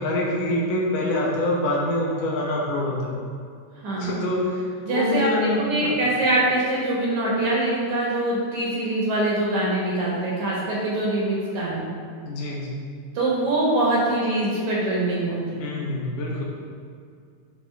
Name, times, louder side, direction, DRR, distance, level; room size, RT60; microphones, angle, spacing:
voice 1, 0.0-3.1 4.0-6.0 12.3-12.7 15.6-16.4, left 1 dB, 70° left, -3 dB, 2.4 m, -25 dB
voice 2, 3.8-4.2 4.9-5.3 5.6-11.9 13.1-15.6, right 1 dB, 60° right, -6 dB, 2.5 m, -23 dB
11.5 x 4.2 x 3.4 m, 2.3 s
omnidirectional pair, 4.2 m